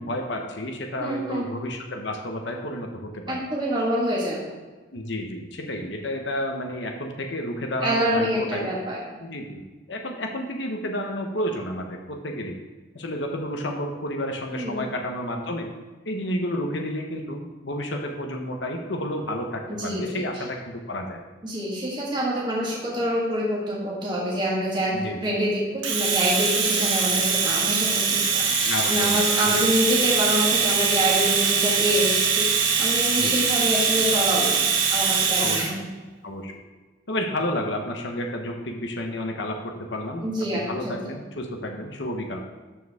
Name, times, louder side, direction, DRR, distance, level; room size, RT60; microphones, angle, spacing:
voice 1, 0.0-3.4 4.9-8.7 9.2-9.6 9.9-12.6 12.9-15.7 16.0-21.2 24.9-25.2 28.6-29.6 33.2-33.4 35.4-35.7 36.2-36.5 37.1-40.2 40.5-42.4, left 1 dB, 65° left, 3 dB, 1.0 m, -31 dB
voice 2, 1.0-1.5 3.3-4.4 7.8-9.0 14.6-14.8 19.7-20.4 21.4-35.9 40.2-41.1, equal, 20° right, -5 dB, 1.7 m, -26 dB
Domestic sounds home sounds, 25.8-35.7, right 5 dB, 80° right, 1.4 m, -22 dB
13.0 x 4.7 x 3.5 m, 1.3 s
head